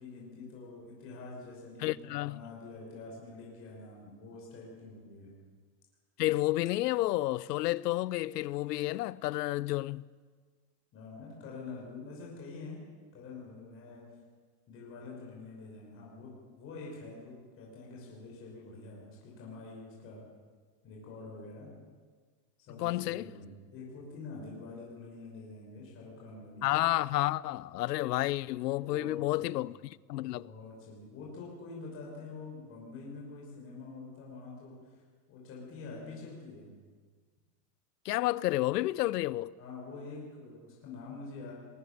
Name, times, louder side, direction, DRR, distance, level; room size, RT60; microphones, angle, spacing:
voice 1, 0.0-5.3 10.9-12.8 13.1-14.0 14.7-20.2 20.8-21.7 22.7-26.7 28.8-29.6 30.2-34.9 35.3-36.7 39.6-41.5, left 3 dB, 25° left, 5.6 m, -46 dB
voice 2, 1.8-2.4 6.2-10.1 22.8-23.3 26.6-30.5 38.0-39.5, left 17 dB, 80° left, 0.7 m, -30 dB
20.5 x 18.5 x 6.9 m
supercardioid pair, 155°, 47 cm